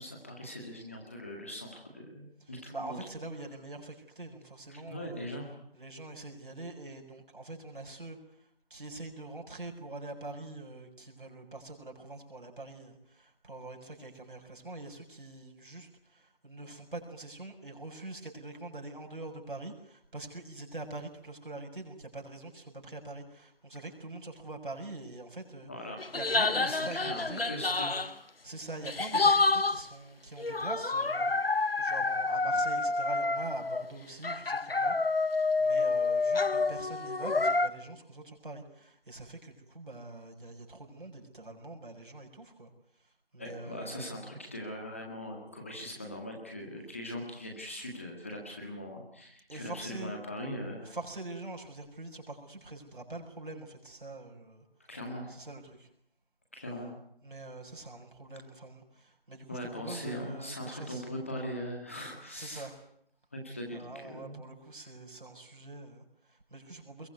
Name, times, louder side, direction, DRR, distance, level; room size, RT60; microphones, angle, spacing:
voice 1, 0.0-3.0 4.7-5.5 25.7-26.0 26.4-28.3 43.4-50.9 54.9-55.3 56.5-56.9 59.5-62.7 63.3-64.4, equal, 15° left, 1 dB, 1.9 m, -40 dB
voice 2, 2.4-5.3 5.7-8.2 8.7-27.5 28.4-31.3 31.8-35.0 35.6-42.7 43.3-44.2 49.5-50.2 50.8-54.6 55.3-55.9 57.2-61.1 62.3-62.8 63.7-67.1, right 2 dB, 60° right, 1 dB, 6.8 m, -44 dB
sound 1, 26.0-28.1 28.8-29.8 30.4-33.9 34.2-37.7, left 3 dB, 80° left, 1.4 m, -28 dB
22.5 x 22.5 x 9.5 m, 0.70 s
figure-of-eight pair, 175°, 29 cm